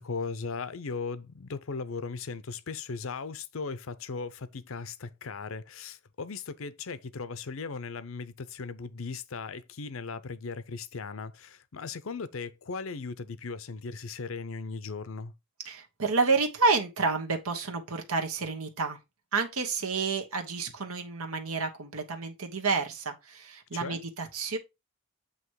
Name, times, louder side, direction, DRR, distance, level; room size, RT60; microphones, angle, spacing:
voice 1, 0.0-15.3 23.7-24.0, left 4 dB, 70° left, 0.6 m, -37 dB
voice 2, 15.6-19.0 19.3-24.6, right 4 dB, 85° right, 1.3 m, -29 dB
8.0 x 3.0 x 4.6 m
head